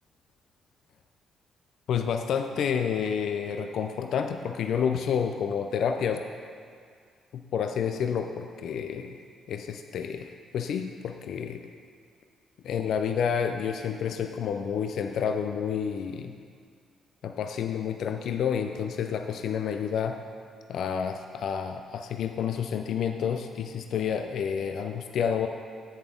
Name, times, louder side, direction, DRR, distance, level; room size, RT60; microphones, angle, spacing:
voice 1, 1.9-6.2 7.3-9.2 9.5-11.6 12.6-16.3 17.2-20.2 20.7-25.5, left 7 dB, 70° left, 6 dB, 0.4 m, -29 dB
7.9 x 7.1 x 3.7 m, 2.1 s
cardioid pair, 90°, 0 cm